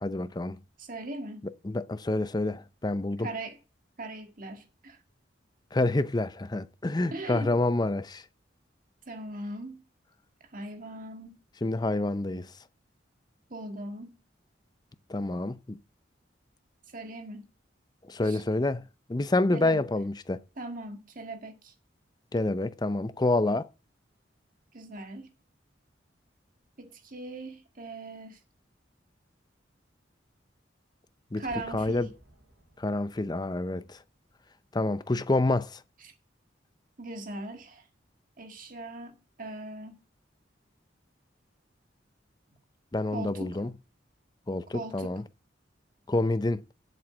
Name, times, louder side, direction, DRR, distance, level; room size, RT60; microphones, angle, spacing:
voice 1, 0.0-0.6 1.4-3.3 5.7-8.2 11.6-12.5 15.1-15.8 18.0-18.8 19.1-20.4 22.3-23.7 31.3-31.4 31.7-32.1 32.8-34.0 34.7-35.8 42.9-43.7 44.5-45.2 46.1-46.6, left 2 dB, 25° left, 0.5 m, -28 dB
voice 2, 0.8-1.5 3.2-3.6 4.0-5.0 7.1-7.5 9.1-9.8 10.5-11.4 13.5-14.2 16.9-17.5 18.2-18.4 19.5-19.8 20.6-21.7 24.7-25.3 26.8-28.4 31.4-32.1 36.0-36.1 37.0-37.8 38.4-40.0 43.1-43.6 44.7-45.2, right 2 dB, 50° right, 1.9 m, -40 dB
sound 1, 31.4-34.3 34.7-34.8, right 1 dB, 70° right, 5.1 m, -56 dB
7.8 x 7.7 x 7.2 m
head